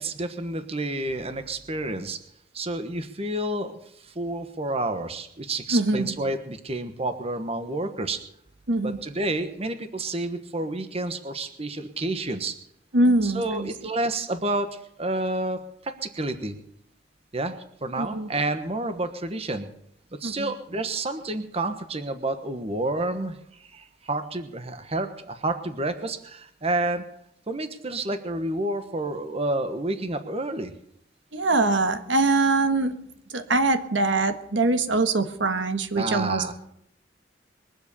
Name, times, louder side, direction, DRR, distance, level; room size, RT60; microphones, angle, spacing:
voice 1, 0.0-2.2 2.5-8.2 8.8-12.5 13.2-16.6 17.3-17.6 17.8-19.7 20.2-27.0 27.5-30.7 35.9-36.5, right 2 dB, 35° right, 9 dB, 1.2 m, -29 dB
voice 2, 5.7-6.1 8.7-9.0 12.9-13.7 18.0-18.3 20.2-20.5 31.3-33.0 33.3-36.4, right 2 dB, 85° right, 8 dB, 1.5 m, -23 dB
22.0 x 8.0 x 6.9 m, 0.74 s
head